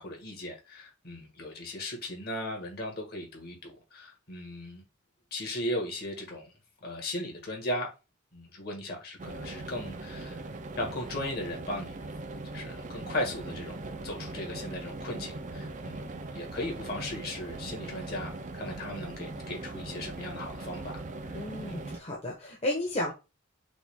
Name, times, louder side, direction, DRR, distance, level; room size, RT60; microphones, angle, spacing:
voice 1, 0.0-4.8 5.3-6.5 6.8-7.9 8.3-10.4 10.8-11.9 12.5-21.4 21.6-21.8, left 1 dB, 50° left, 1.7 m, -37 dB
sound 1, 9.2-22.0, right 2 dB, 40° right, 0.5 m, -40 dB
voice 2, 21.3-23.1, left 1 dB, 30° left, 1.1 m, -33 dB
6.1 x 2.4 x 3.6 m
head